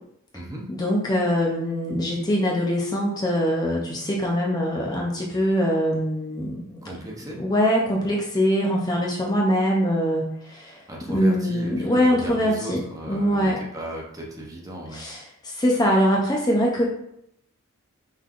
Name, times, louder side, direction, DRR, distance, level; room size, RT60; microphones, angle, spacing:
voice 1, 0.7-6.8 7.3-10.8 11.1-13.6 14.9-16.9, equal, 20° left, -2 dB, 0.5 m, -23 dB
voice 2, 6.8-7.4 10.9-15.0, right 1 dB, 15° right, -2 dB, 0.7 m, -36 dB
5.6 x 3.2 x 2.5 m, 0.76 s
head